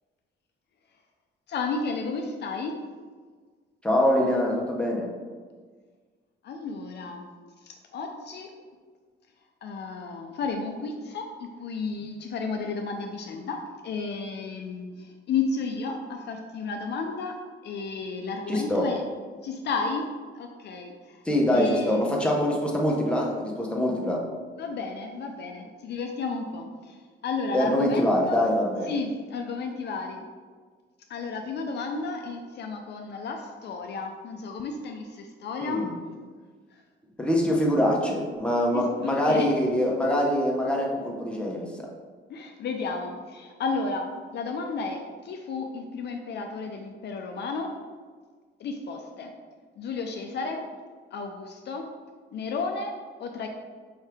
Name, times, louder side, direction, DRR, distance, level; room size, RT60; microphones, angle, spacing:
voice 1, 1.5-2.8 6.4-7.3 7.6-8.5 9.6-17.4 17.6-19.0 19.4-20.1 20.4-21.2 21.5-22.0 24.6-28.4 28.9-30.2 31.1-35.8 36.7-36.8 38.7-39.5 42.3-47.7 48.6-49.3 49.8-50.6 51.1-51.9 52.3-52.9 53.2-53.5, left 4 dB, 60° left, 3 dB, 0.4 m, -32 dB
voice 2, 3.8-5.1 18.5-18.9 21.2-24.2 27.5-28.9 35.6-35.9 37.2-41.9, left 1 dB, 5° left, -2 dB, 0.8 m, -24 dB
4.7 x 2.7 x 3.3 m, 1.5 s
cardioid pair, 90°, 20 cm